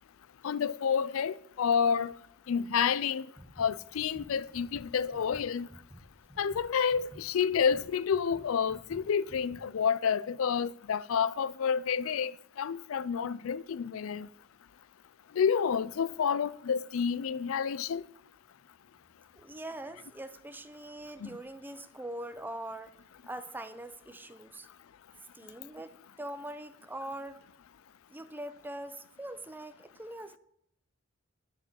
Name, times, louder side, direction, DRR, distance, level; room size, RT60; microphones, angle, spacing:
voice 1, 0.4-2.1 2.5-3.3 3.6-5.7 6.4-14.3 15.3-18.0 21.2-21.3, left 7 dB, 70° left, 0.4 m, -29 dB
sound 1, 3.4-9.7, equal, 5° left, 2.0 m, -52 dB
voice 2, 19.4-22.9 23.2-24.7 25.3-27.4 28.1-30.4, right 1 dB, 10° right, 0.5 m, -42 dB
10.0 x 6.0 x 6.3 m
head